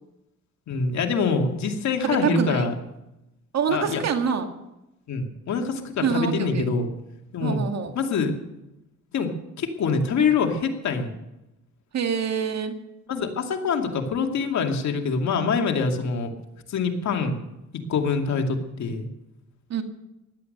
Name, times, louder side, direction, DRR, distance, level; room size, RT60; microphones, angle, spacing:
voice 1, 0.7-2.7 3.7-4.0 5.1-6.9 7.3-7.7 7.9-8.3 9.1-9.3 9.6-11.1 13.1-16.3 16.7-17.4 17.9-19.1, left 4 dB, 65° left, 3 dB, 2.5 m, -25 dB
voice 2, 2.0-2.7 3.5-4.5 6.0-6.7 7.4-7.9 11.9-12.8 19.7-19.8, right 6 dB, 60° right, 6 dB, 2.1 m, -25 dB
16.0 x 11.5 x 6.7 m, 0.91 s
cardioid pair, 90°, 30 cm